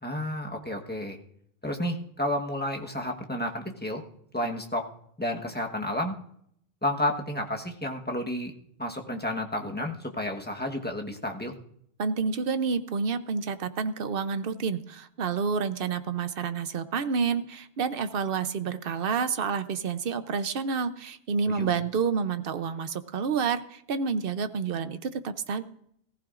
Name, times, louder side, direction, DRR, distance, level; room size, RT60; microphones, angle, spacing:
voice 1, 0.0-1.2 1.6-4.0 4.3-4.8 5.2-6.2 6.8-8.5 8.8-11.5 21.5-21.8, left 1 dB, 10° left, 1 dB, 1.2 m, -31 dB
voice 2, 12.0-25.6, right 5 dB, 60° right, 12 dB, 0.9 m, -29 dB
19.5 x 14.5 x 2.5 m, 0.68 s
omnidirectional pair, 1.1 m